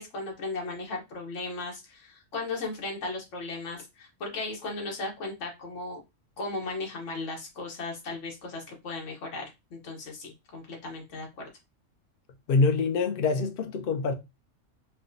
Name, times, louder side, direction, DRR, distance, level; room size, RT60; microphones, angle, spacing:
voice 1, 0.0-6.0 6.4-9.4 9.7-11.5, left 3 dB, 75° left, 1.3 m, -36 dB
voice 2, 12.5-14.1, left 4 dB, 55° left, 0.7 m, -25 dB
4.5 x 2.2 x 2.5 m
omnidirectional pair, 1.3 m